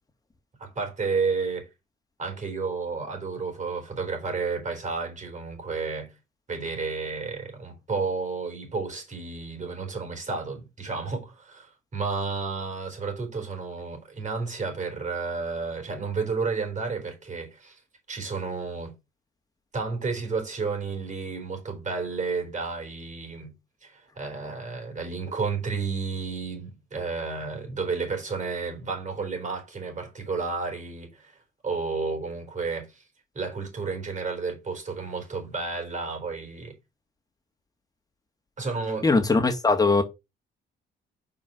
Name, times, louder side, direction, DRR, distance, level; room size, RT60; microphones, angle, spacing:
voice 1, 0.6-1.7 2.2-6.1 6.5-17.8 18.1-18.9 19.7-23.5 23.8-31.3 31.6-33.0 33.3-36.8 38.6-39.1, right 4 dB, 40° right, 4.0 m, -31 dB
voice 2, 39.0-40.0, left 3 dB, 20° left, 2.0 m, -20 dB
5.3 x 4.8 x 5.9 m
cardioid pair, 90°, 20 cm